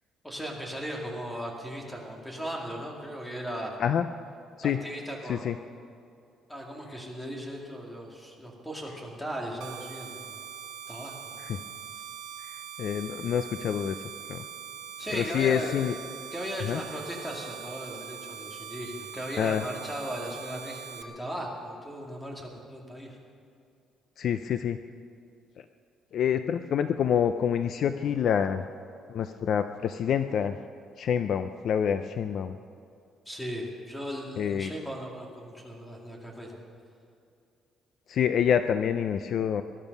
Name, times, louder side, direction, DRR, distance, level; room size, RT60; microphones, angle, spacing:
voice 1, 0.2-3.7 4.6-5.6 6.5-10.3 10.9-11.2 15.0-15.9 16.3-23.2 33.3-36.6, equal, 5° left, -1 dB, 2.4 m, -37 dB
voice 2, 5.3-5.6 11.4-11.6 12.4-14.0 14.3-14.4 15.1-15.9 16.6-16.8 19.4-19.6 24.2-24.8 26.1-28.7 29.1-30.5 31.0-32.6 34.4-34.7 38.1-39.6, left 8 dB, 50° left, 10 dB, 0.4 m, -27 dB
sound 1, 9.6-21.0, right 7 dB, 90° right, 1.0 m, -42 dB
20.0 x 12.5 x 5.4 m, 2.5 s
cardioid pair, 170°, 0 cm